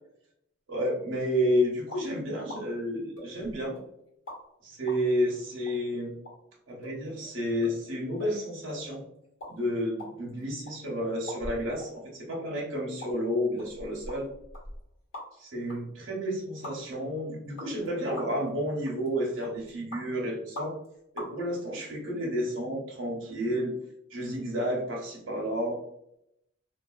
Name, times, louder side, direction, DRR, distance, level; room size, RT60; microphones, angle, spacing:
voice 1, 0.7-3.8 4.6-6.2 6.7-9.0 9.5-14.3 15.4-20.7 21.1-23.7 24.1-25.8, equal, 65° right, -3 dB, 0.9 m, -31 dB
sound 1, 1.9-2.1 2.5-2.6 3.2-3.8 4.3-4.4 4.9-5.0 5.6-5.7 6.3-6.4 6.8-7.0 7.2-7.3 7.6-7.7 8.2-8.3 8.7-8.9 9.2-9.5 9.8-10.7 11.3-11.9 12.3-12.4 13.0-13.1 13.6-15.4 15.7-15.8 16.6-16.8 17.6-17.9 18.2-18.5 18.9-19.1 19.4-20.0 20.6-20.9 21.2-21.3, left 1 dB, 75° left, 1.2 m, -41 dB
3.2 x 2.4 x 2.4 m, 0.79 s
head